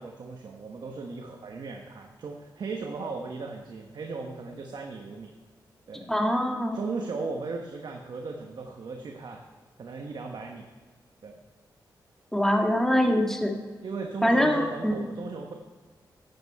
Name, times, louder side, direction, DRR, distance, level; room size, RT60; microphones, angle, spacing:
voice 1, 0.0-5.3 5.9-6.0 6.7-9.4 9.8-10.7 11.2-11.4 13.8-15.5, right 4 dB, 65° right, 2 dB, 1.1 m, -37 dB
voice 2, 6.1-6.8 12.3-13.5 14.2-15.1, equal, 5° left, 2 dB, 1.7 m, -24 dB
13.0 x 8.5 x 4.7 m, 1.4 s
cardioid pair, 70°, 8 cm